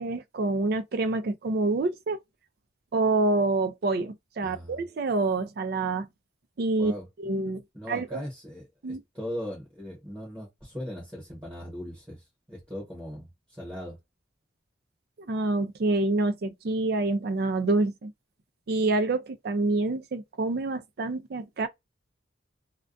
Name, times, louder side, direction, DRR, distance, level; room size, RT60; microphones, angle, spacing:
voice 1, 0.0-2.2 2.9-6.1 6.6-6.9 7.2-7.6 7.9-8.2 8.8-9.0 15.3-18.1 18.7-21.7, right 2 dB, 50° right, 0.4 m, -27 dB
voice 2, 4.4-4.8 6.8-7.3 7.7-14.0, equal, 15° right, 1.0 m, -39 dB
2.2 x 2.2 x 2.5 m
head